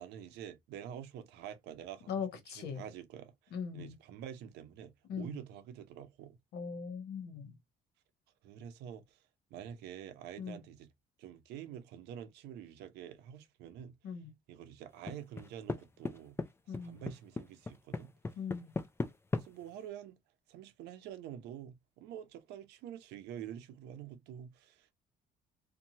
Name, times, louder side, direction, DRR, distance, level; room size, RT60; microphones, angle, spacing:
voice 1, 0.0-2.1 2.6-6.4 8.4-9.2 9.5-10.9 11.2-13.9 14.5-16.4 16.7-18.1 19.3-20.2 20.5-24.9, right 10 dB, 90° right, 0.6 m, -47 dB
voice 2, 2.1-2.8 3.5-4.0 5.1-5.4 6.5-7.5 10.4-10.6 14.0-14.3 16.7-17.0 18.4-18.7, left 6 dB, 75° left, 1.0 m, -40 dB
sound 1, 15.1-15.8 16.0-16.5 16.7-19.5, left 3 dB, 15° left, 0.4 m, -35 dB
2.8 x 2.2 x 2.7 m
cardioid pair, 110°, 17 cm